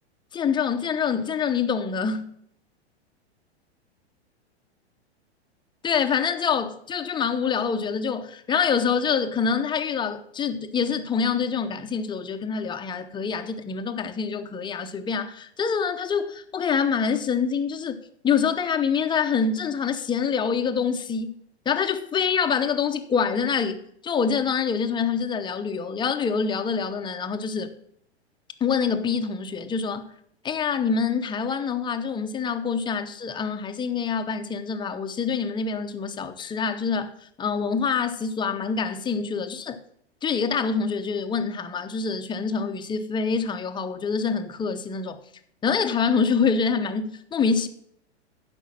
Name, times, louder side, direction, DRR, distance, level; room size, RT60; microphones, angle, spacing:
voice 1, 0.3-2.3 5.8-21.3 21.7-27.7 28.6-30.1 30.4-37.1 37.4-39.8 40.2-45.2 45.6-47.7, left 6 dB, 15° left, 0.8 m, -26 dB
11.0 x 5.3 x 7.3 m
hypercardioid pair, 110°, 33 cm